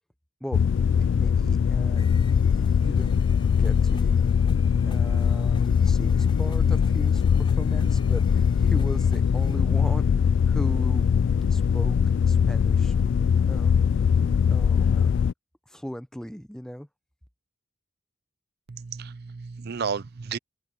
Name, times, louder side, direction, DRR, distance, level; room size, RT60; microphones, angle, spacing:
sound 1, 0.5-15.3, left 7 dB, 60° left, 0.3 m, -21 dB
voice 1, 0.9-2.1 2.5-3.2 3.6-4.2 4.8-10.1 10.5-11.1 11.5-12.0 12.3-12.9 13.5-13.8 14.5-15.1 15.7-16.9, equal, 5° left, 0.7 m, -38 dB
sound 2, 2.0-9.6, left 4 dB, 25° left, 6.0 m, -53 dB
voice 2, 18.7-20.4, right 5 dB, 50° right, 0.5 m, -33 dB
head